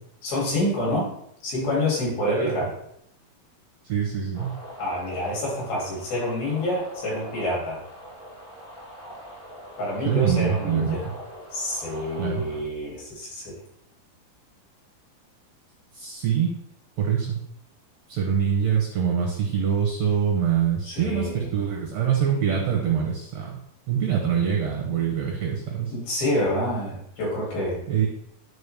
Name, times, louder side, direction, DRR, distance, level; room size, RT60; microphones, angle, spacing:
voice 1, 0.2-1.1 1.4-2.7 4.8-7.8 9.8-11.1 11.5-13.6 20.8-21.5 25.9-27.8, left 1 dB, 75° left, -5 dB, 4.6 m, -27 dB
voice 2, 2.3-2.7 3.9-4.6 10.0-11.0 12.2-12.4 15.9-16.5 17.0-17.4 18.1-23.6 23.9-25.9 27.9-28.1, right 8 dB, 70° right, 0 dB, 1.7 m, -24 dB
sound 1, 4.3-12.6, equal, 20° left, 3.3 m, -42 dB
10.0 x 4.4 x 3.4 m, 0.74 s
omnidirectional pair, 4.4 m